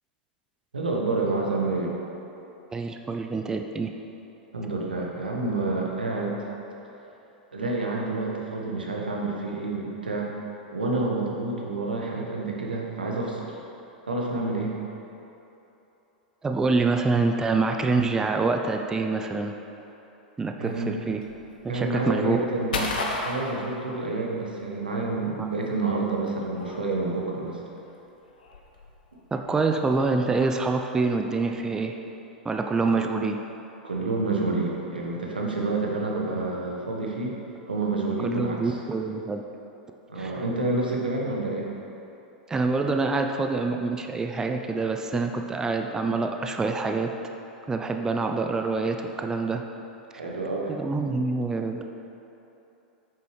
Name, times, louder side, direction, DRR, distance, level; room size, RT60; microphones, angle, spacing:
voice 1, 0.7-1.9 4.5-6.5 7.5-10.3 10.7-13.6 14.1-14.7 20.6-20.9 21.7-22.9 23.2-27.6 32.8-33.0 33.8-37.3 37.7-38.7 40.1-41.7 50.1-50.8, right 2 dB, 85° right, -2 dB, 1.2 m, -28 dB
voice 2, 2.7-3.9 16.4-19.5 20.4-21.2 21.6-22.4 25.4-25.5 29.3-32.0 32.4-33.4 38.2-39.4 40.2-40.4 42.5-47.1 47.7-49.6 50.7-51.8, right 3 dB, 15° right, 4 dB, 0.4 m, -26 dB
sound 1, 20.6-24.5 24.8-30.6, left 3 dB, 70° left, 0.9 m, -35 dB
8.6 x 6.8 x 3.2 m, 3.0 s
figure-of-eight pair, 95°, 5 cm